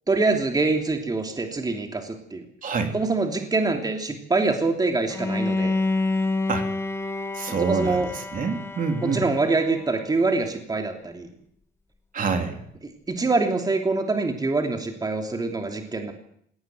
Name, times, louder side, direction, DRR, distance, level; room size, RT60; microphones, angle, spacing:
voice 1, 0.1-2.4 2.9-5.7 7.5-8.1 9.0-11.3 13.1-16.1, right 3 dB, 20° right, 4 dB, 3.1 m, -25 dB
voice 2, 2.6-3.0 6.5-6.7 7.3-9.2 12.1-12.6, right 5 dB, 45° right, 5 dB, 3.6 m, -27 dB
Bowed string instrument, 5.1-10.1, left 3 dB, 15° left, 1.7 m, -28 dB
19.0 x 18.0 x 9.4 m, 0.69 s
cardioid pair, 105°, 18 cm